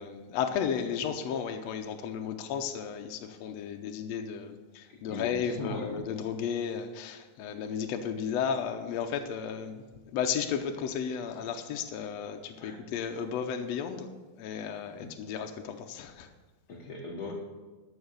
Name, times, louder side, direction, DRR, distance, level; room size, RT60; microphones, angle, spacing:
voice 1, 0.0-9.8 10.1-14.1 14.4-16.3, left 7 dB, 75° left, 5 dB, 1.6 m, -34 dB
voice 2, 4.9-6.0 12.6-12.8 15.0-15.1 16.7-17.3, left 3 dB, 50° left, -2 dB, 1.1 m, -39 dB
12.5 x 6.4 x 6.8 m, 1.2 s
omnidirectional pair, 3.7 m